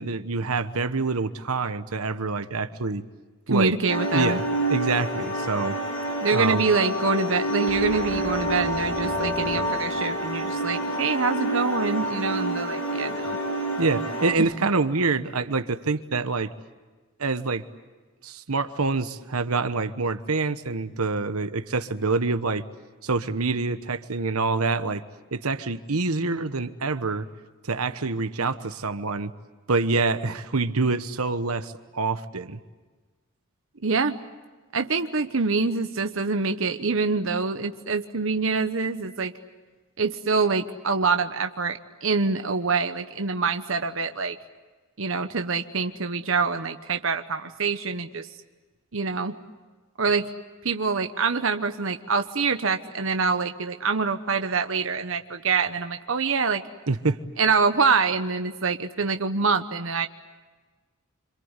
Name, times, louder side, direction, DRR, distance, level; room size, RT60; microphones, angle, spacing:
voice 1, 0.0-3.0 3.5-3.7 4.1-4.4 4.7-5.8 6.3-6.6 13.8-16.5 17.2-17.6 18.2-22.6 23.0-25.0 25.3-27.3 27.6-29.3 29.7-32.6 56.9-57.2, right 3 dB, 85° right, 10 dB, 1.1 m, -26 dB
voice 2, 3.5-4.4 6.2-13.4 14.4-14.5 33.8-34.2 34.7-39.3 40.0-44.4 45.0-48.3 48.9-49.4 50.0-50.3 50.6-56.6 57.4-60.1, right 4 dB, 65° right, 7 dB, 1.0 m, -25 dB
sound 1, 3.9-14.3, right 1 dB, 80° left, 5.6 m, -28 dB
sound 2, 7.7-11.0, right 2 dB, 45° right, 2.8 m, -38 dB
27.0 x 26.0 x 8.2 m, 1.3 s
head